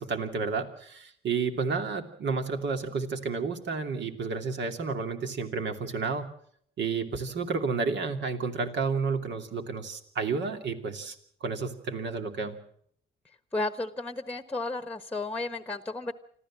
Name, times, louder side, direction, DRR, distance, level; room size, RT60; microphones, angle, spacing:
voice 1, 0.0-6.3 6.8-11.1 11.4-12.6, right 4 dB, 65° right, 6 dB, 2.9 m, -31 dB
voice 2, 13.5-16.1, left 2 dB, 5° left, 11 dB, 1.3 m, -33 dB
26.0 x 14.5 x 7.5 m, 0.66 s
cardioid pair, 90°, 20 cm